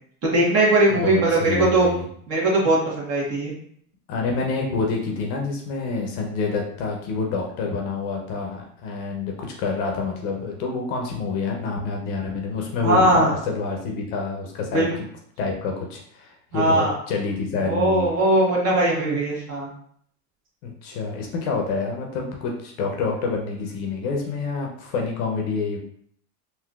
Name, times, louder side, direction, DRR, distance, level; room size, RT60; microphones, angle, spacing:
voice 1, 0.2-1.9 2.3-3.5 12.8-13.3 14.7-14.9 16.5-16.9 17.6-19.7, right 1 dB, 35° right, -4 dB, 1.4 m, -20 dB
voice 2, 0.9-2.0 4.1-14.9 15.4-18.1 20.6-25.8, left 4 dB, 45° left, 1 dB, 0.7 m, -27 dB
3.6 x 2.7 x 2.3 m, 0.64 s
supercardioid pair, 130°, 44 cm